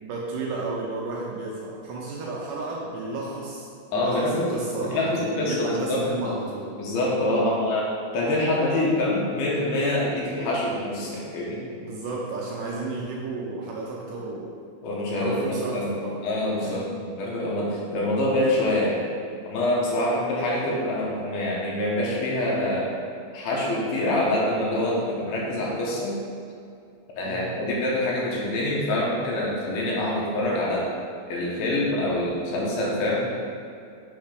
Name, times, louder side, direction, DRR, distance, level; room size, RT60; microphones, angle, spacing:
voice 1, 0.0-6.7 7.4-7.6 11.8-14.6 15.1-16.1 16.6-16.9 27.3-27.5, right 3 dB, 80° right, -3 dB, 2.0 m, -33 dB
voice 2, 3.9-4.5 4.8-6.4 6.8-7.9 8.1-11.6 14.8-15.9 16.2-16.9 17.1-19.0 19.4-22.9 23.3-26.2 27.2-30.8 31.3-33.3, left 1 dB, 90° left, -4 dB, 3.1 m, -25 dB
7.2 x 3.3 x 5.1 m, 2.4 s
omnidirectional pair, 4.3 m